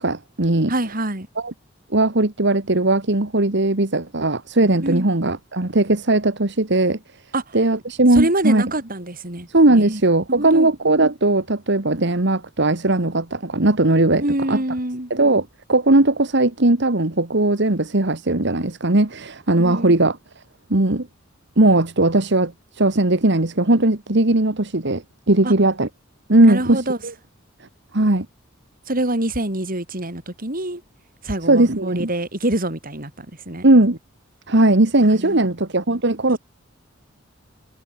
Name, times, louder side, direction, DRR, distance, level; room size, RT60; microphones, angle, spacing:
voice 1, 0.0-0.7 1.4-1.5 1.9-7.0 7.5-8.6 9.5-14.2 14.5-14.6 15.1-20.2 20.7-21.1 21.6-25.9 26.3-27.1 27.9-28.3 31.5-32.1 33.6-34.0 34.5-36.4, right 2 dB, 60° right, 1.9 m, -18 dB
voice 2, 0.7-1.3 4.8-5.1 7.3-7.6 8.1-9.5 9.8-10.0 10.3-10.7 14.2-15.1 19.6-20.0 25.4-25.5 26.5-27.0 28.9-30.8 31.2-33.6 35.1-35.5 36.3-36.4, right 1 dB, 45° right, 5.2 m, -25 dB
head